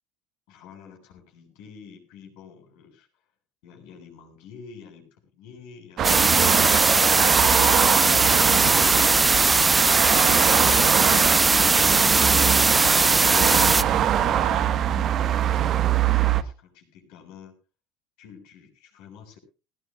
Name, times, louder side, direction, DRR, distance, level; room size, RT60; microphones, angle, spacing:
voice 1, 0.5-3.2 3.6-6.1 6.5-9.4 9.8-13.6 14.5-17.6 18.2-19.4, left 6 dB, 70° left, 3 dB, 7.2 m, -48 dB
sound 1, 6.0-13.8, right 3 dB, 10° right, 0.6 m, -19 dB
sound 2, 6.0-16.4, right 10 dB, 40° right, 1.2 m, -23 dB
sound 3, 9.3-14.7, right 9 dB, 80° right, 5.3 m, -37 dB
18.5 x 18.0 x 2.3 m, 0.33 s
cardioid pair, 145°, 0 cm